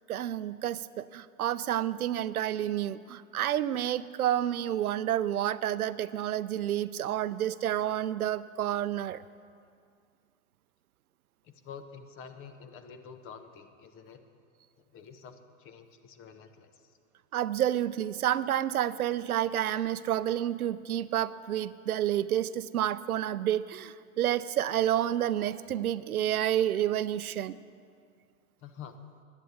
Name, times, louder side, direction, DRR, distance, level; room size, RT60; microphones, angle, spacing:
voice 1, 0.1-9.2 17.3-27.6, right 11 dB, 85° right, 16 dB, 0.6 m, -29 dB
voice 2, 11.4-14.2 14.9-16.9 28.6-29.0, left 6 dB, 30° left, 8 dB, 1.0 m, -48 dB
11.0 x 9.1 x 8.1 m, 2.2 s
hypercardioid pair, 115°, 43 cm